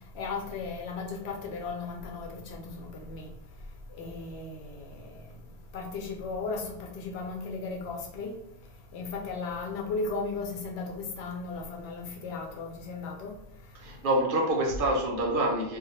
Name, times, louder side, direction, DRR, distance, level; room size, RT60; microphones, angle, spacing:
voice 1, 0.1-3.3 4.0-5.0 5.7-8.3 8.9-13.3, left 4 dB, 70° left, 0.8 m, -36 dB
voice 2, 13.7-15.8, right 1 dB, 60° right, 0.7 m, -27 dB
2.3 x 2.1 x 2.9 m
omnidirectional pair, 1.2 m